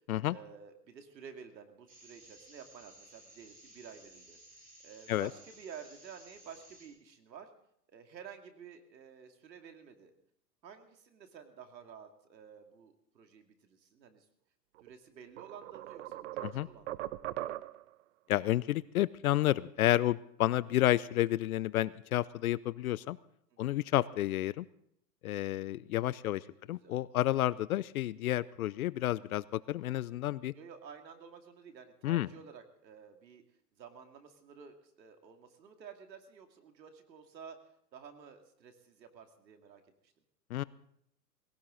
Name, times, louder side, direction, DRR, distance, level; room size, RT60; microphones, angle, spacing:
voice 1, 0.3-4.4 4.8-7.5 7.9-10.1 10.6-14.3 14.8-17.1 23.5-23.8 25.9-26.1 26.8-27.0 30.5-33.4 33.8-37.6 37.9-40.1, right 7 dB, 80° right, 5 dB, 2.6 m, -52 dB
sound 1, 1.9-6.9, right 1 dB, 15° right, 3.9 m, -57 dB
sound 2, 14.8-14.9 15.4-17.9, right 14 dB, 45° right, 0.6 m, -40 dB
voice 2, 18.3-23.2 23.6-24.7 25.2-30.5 32.0-32.3 40.5-40.6, left 14 dB, 60° left, 19 dB, 0.6 m, -30 dB
19.5 x 17.0 x 3.9 m, 0.72 s
hypercardioid pair, 135°, 50 cm